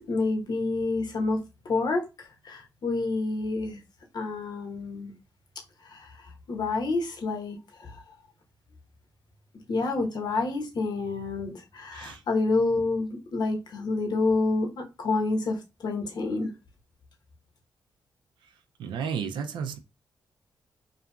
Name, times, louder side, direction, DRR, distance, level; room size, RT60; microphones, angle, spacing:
voice 1, 0.0-1.4 1.6-3.8 4.1-5.1 5.8-8.0 9.7-16.5, left 3 dB, 65° left, 0.9 m, -28 dB
voice 2, 18.8-19.8, right 7 dB, 85° right, 0.4 m, -32 dB
2.8 x 2.4 x 2.2 m
cardioid pair, 55°, 8 cm